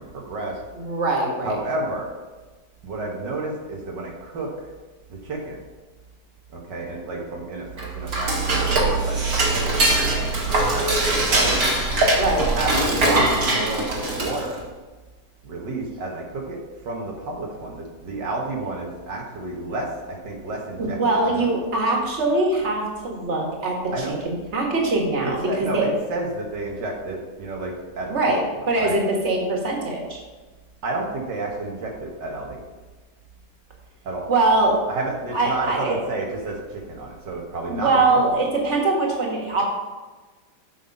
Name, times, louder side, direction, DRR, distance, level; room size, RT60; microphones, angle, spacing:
voice 1, 0.0-0.6 1.4-2.1 2.8-4.7 5.1-5.6 6.5-9.2 9.5-10.4 10.7-11.6 12.4-14.6 15.4-16.6 16.8-21.5 23.9-24.1 25.2-28.3 28.8-29.0 30.8-32.6 34.0-34.3 34.9-38.4, right 2 dB, 85° right, -1 dB, 2.1 m, -31 dB
voice 2, 0.7-1.6 12.2-12.5 20.8-25.8 28.1-30.2 34.3-34.8 35.3-36.0 37.7-39.6, right 2 dB, 40° right, -1 dB, 2.1 m, -22 dB
Dishes pots and pans / Cutlery silverware, 7.7-14.6, right 2 dB, 55° right, 2.2 m, -22 dB
8.4 x 5.7 x 5.4 m, 1.3 s
omnidirectional pair, 1.8 m